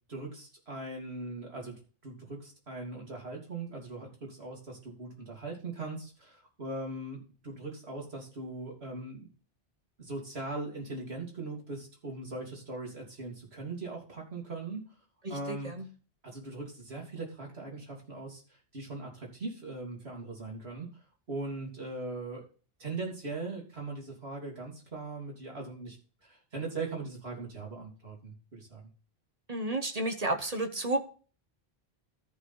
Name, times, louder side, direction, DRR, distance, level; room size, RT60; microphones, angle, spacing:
voice 1, 0.1-9.3 10.0-14.8 15.3-15.7 16.2-18.4 18.7-20.9 21.3-22.4 22.8-26.0 26.2-28.8, right 3 dB, 75° right, -2 dB, 3.4 m, -40 dB
voice 2, 15.2-15.9 29.5-31.0, right 2 dB, 40° right, 7 dB, 1.1 m, -32 dB
14.0 x 5.0 x 4.6 m, 0.38 s
omnidirectional pair, 1.1 m